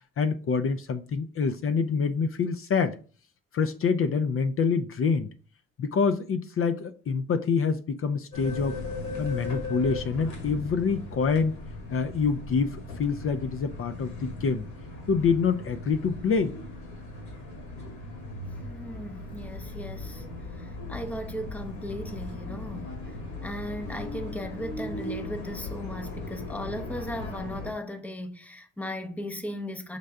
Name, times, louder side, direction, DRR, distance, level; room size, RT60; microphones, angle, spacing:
voice 1, 0.2-3.0 3.5-5.3 5.8-8.8 9.2-11.6 11.9-14.7 15.1-16.5, left 5 dB, 45° left, 0.5 m, -26 dB
sound 1, 8.3-27.7, left 2 dB, 70° left, 2.4 m, -38 dB
voice 2, 18.6-30.0, equal, 5° left, 0.6 m, -37 dB
6.6 x 2.2 x 3.6 m
cardioid pair, 90°, 30 cm